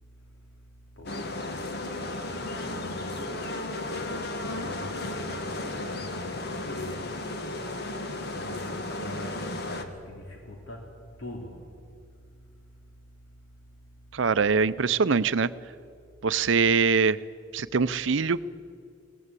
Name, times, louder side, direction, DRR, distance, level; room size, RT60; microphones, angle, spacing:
voice 1, 0.0-7.2 7.5-13.3 13.6-14.2, left 1 dB, 75° left, 0 dB, 3.0 m, -44 dB
sound 1, 1.1-9.8, left 2 dB, 55° left, 1.6 m, -34 dB
voice 2, 14.1-15.5 16.2-17.2 17.5-18.4, right 5 dB, 70° right, 16 dB, 0.6 m, -23 dB
22.5 x 17.5 x 8.3 m, 2.3 s
head